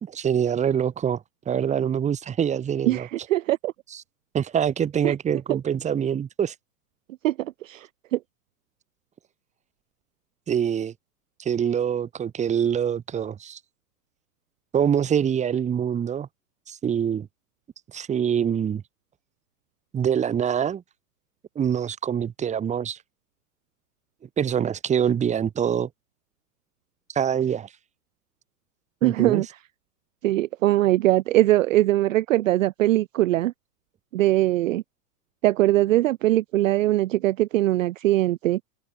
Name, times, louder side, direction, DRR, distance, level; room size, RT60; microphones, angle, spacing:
voice 1, 0.0-3.1 3.9-4.0 4.3-6.5 10.5-10.9 11.4-13.6 14.7-16.3 16.7-17.3 17.9-18.8 19.9-20.8 21.5-23.0 24.4-25.9 27.1-27.7 29.0-29.4, right 8 dB, 15° right, 1.3 m, -25 dB
voice 2, 2.9-3.7 5.0-5.1 5.5-5.6 7.2-7.9 8.1-8.2 29.0-29.5 30.2-33.5 34.1-34.8 35.4-38.6, right 15 dB, 55° right, 0.6 m, -21 dB
figure-of-eight pair, 100°, 48 cm